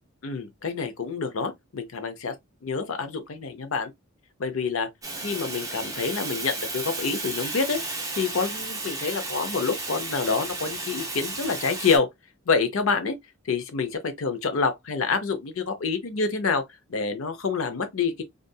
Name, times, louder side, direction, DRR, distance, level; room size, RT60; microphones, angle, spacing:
voice 1, 0.2-2.3 2.6-3.9 4.4-4.9 5.2-7.8 8.1-12.1 12.5-13.1 13.5-16.6 16.9-18.2, left 5 dB, 80° left, 0.6 m, -27 dB
Fire, 5.0-12.0, right 2 dB, 15° right, 0.9 m, -33 dB
2.6 x 2.5 x 2.2 m
head